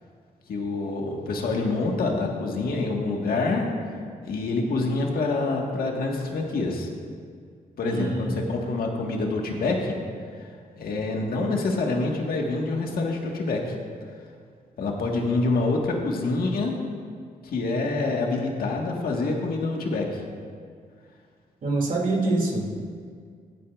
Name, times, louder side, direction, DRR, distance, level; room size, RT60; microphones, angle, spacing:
voice 1, 0.5-3.6 4.2-6.9 7.8-9.9 10.4-10.5 10.7-13.6 14.8-16.8 17.4-20.2, left 3 dB, 80° left, 0 dB, 1.6 m, -26 dB
voice 2, 7.8-8.4 21.6-22.7, right 2 dB, 60° right, -1 dB, 2.4 m, -25 dB
25.0 x 8.4 x 2.4 m, 2.1 s
cardioid pair, 105°, 15 cm